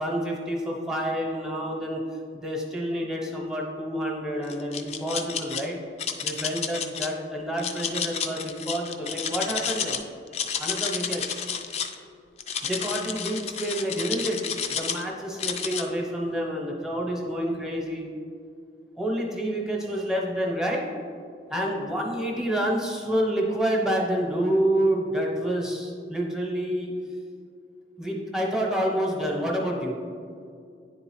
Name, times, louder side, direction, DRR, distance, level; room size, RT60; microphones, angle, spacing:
voice 1, 0.0-2.0 2.3-5.8 6.2-10.0 10.6-11.2 12.6-14.4 14.7-18.1 19.0-20.8 21.5-26.9 28.0-30.0, equal, 5° right, -2 dB, 0.8 m, -28 dB
sound 1, 4.5-5.6 6.0-7.1 7.6-10.0 10.3-11.9 12.4-15.0 15.4-15.8, left 7 dB, 35° left, 0.4 m, -30 dB
9.8 x 3.8 x 3.1 m, 2.4 s
head